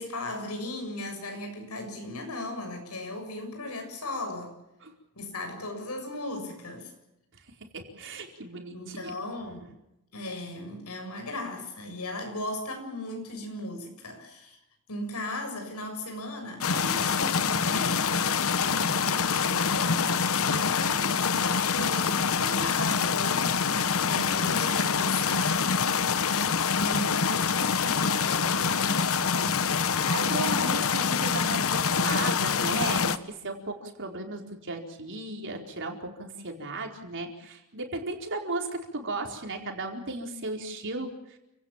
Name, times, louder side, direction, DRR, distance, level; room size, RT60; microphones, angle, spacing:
voice 1, 0.0-4.6 5.2-6.9 8.7-9.7 10.1-14.6 14.9-20.0 20.4-21.1 21.4-25.8 26.8-29.2, left 1 dB, 85° left, 5 dB, 7.2 m, -37 dB
voice 2, 7.7-9.1 29.7-41.4, right 2 dB, 60° right, 2 dB, 4.5 m, -35 dB
sound 1, 16.6-33.2, left 6 dB, 65° left, 1.1 m, -25 dB
29.5 x 18.0 x 7.4 m, 0.87 s
head